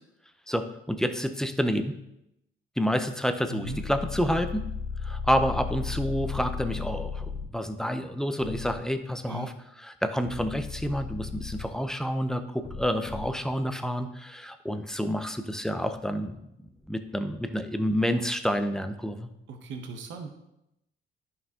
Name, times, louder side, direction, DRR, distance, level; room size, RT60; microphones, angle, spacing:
voice 1, 0.5-2.0 2.8-4.6 5.0-9.5 9.8-16.4 16.9-19.3, equal, 5° left, 8 dB, 0.6 m, -29 dB
voice 2, 3.5-3.8 9.3-9.5 19.5-20.3, right 3 dB, 70° right, 5 dB, 0.9 m, -38 dB
sound 1, 3.6-7.4 8.4-8.8 10.3-11.6 12.6-13.3, left 5 dB, 30° left, 1.1 m, -35 dB
10.5 x 5.6 x 2.8 m, 0.85 s
cardioid pair, 90°, 20 cm